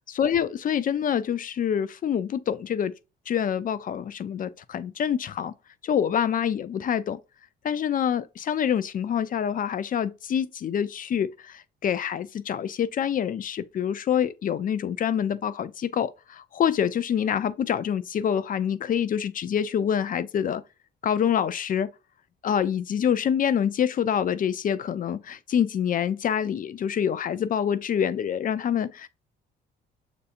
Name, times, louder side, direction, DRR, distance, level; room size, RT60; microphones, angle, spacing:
voice 1, 0.1-2.9 3.3-5.5 5.8-7.2 7.6-20.6 21.0-21.9 22.4-29.1, left 8 dB, 45° left, 0.4 m, -26 dB
6.6 x 2.7 x 2.4 m
cardioid pair, 90°, 20 cm